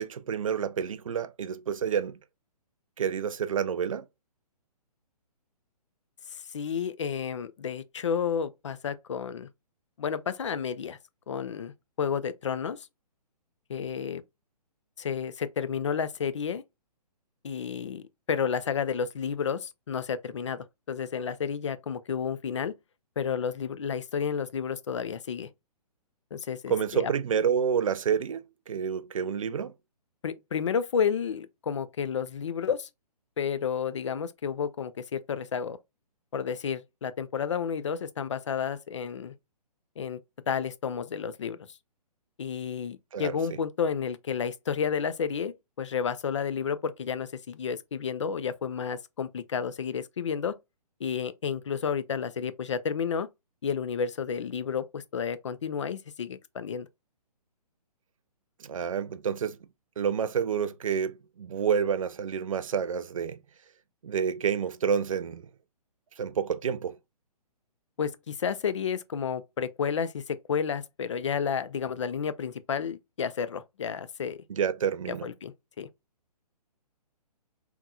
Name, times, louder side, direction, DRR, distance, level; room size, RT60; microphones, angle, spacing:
voice 1, 0.0-2.2 3.0-4.0 26.7-29.7 43.1-43.4 58.6-59.6 60.0-63.4 64.0-65.5 66.2-67.0 74.5-75.3, right 7 dB, 55° right, 0.4 m, -29 dB
voice 2, 6.3-9.5 10.0-11.0 11.3-12.9 13.7-14.2 15.0-16.6 17.4-22.7 23.2-25.5 26.3-27.1 30.2-32.9 33.4-35.8 36.3-39.3 40.0-40.2 40.5-41.8 42.4-50.5 51.0-53.3 53.6-56.9 68.0-74.4 75.1-75.9, left 7 dB, 50° left, 0.4 m, -31 dB
3.6 x 3.0 x 2.3 m
figure-of-eight pair, 130°, 21 cm